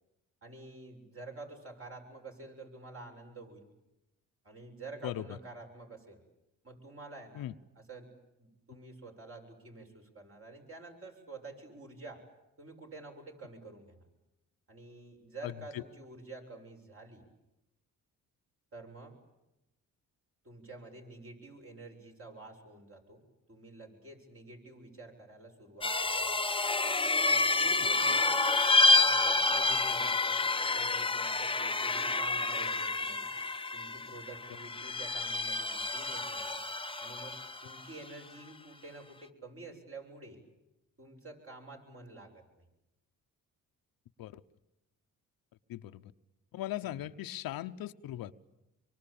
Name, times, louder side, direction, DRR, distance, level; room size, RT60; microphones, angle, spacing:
voice 1, 0.4-3.7 4.4-6.2 6.6-7.5 7.8-8.1 8.4-12.2 12.6-14.0 14.7-17.2 18.7-19.2 20.4-23.2 23.5-26.5 27.2-28.4 29.0-33.3 33.7-36.6 37.0-40.5 41.0-42.4 46.8-47.0, right 3 dB, 40° right, 2 dB, 7.2 m, -49 dB
voice 2, 15.4-15.8 44.2-44.4 45.7-46.0 46.5-48.3, left 13 dB, 85° left, 10 dB, 1.0 m, -39 dB
sound 1, 25.8-37.8, left 3 dB, 15° left, 0.9 m, -29 dB
25.5 x 24.0 x 8.8 m, 0.93 s
cardioid pair, 80°, 35 cm